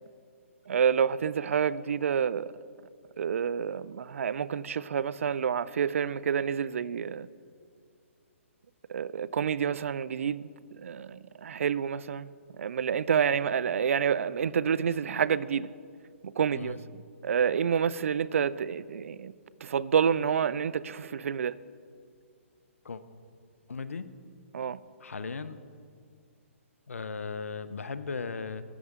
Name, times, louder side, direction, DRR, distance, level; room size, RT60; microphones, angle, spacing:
voice 1, 0.7-2.5 3.2-7.3 8.9-15.7 16.2-16.8 17.2-19.3 19.6-21.6 24.5-24.8, right 7 dB, 70° right, 0.4 m, -28 dB
voice 2, 23.7-24.1 25.0-25.6 26.9-28.6, left 4 dB, 90° left, 0.6 m, -37 dB
13.0 x 9.2 x 3.6 m
hypercardioid pair, 140°, 7 cm